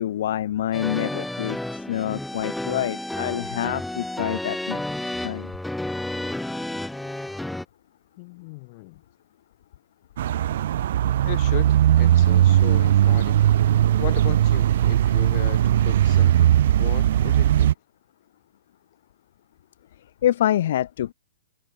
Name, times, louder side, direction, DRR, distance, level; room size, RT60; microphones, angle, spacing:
voice 1, 0.0-4.8 5.2-5.5 20.2-21.1, left 12 dB, 50° left, 0.9 m, -26 dB
sound 1, 0.7-7.7, left 1 dB, ahead, 0.9 m, -31 dB
voice 2, 8.2-9.0 11.2-13.4 14.0-17.7, left 26 dB, 30° left, 3.9 m, -36 dB
sound 2, 10.2-17.7, right 11 dB, 50° right, 0.3 m, -19 dB
hypercardioid pair, 165°, 0 cm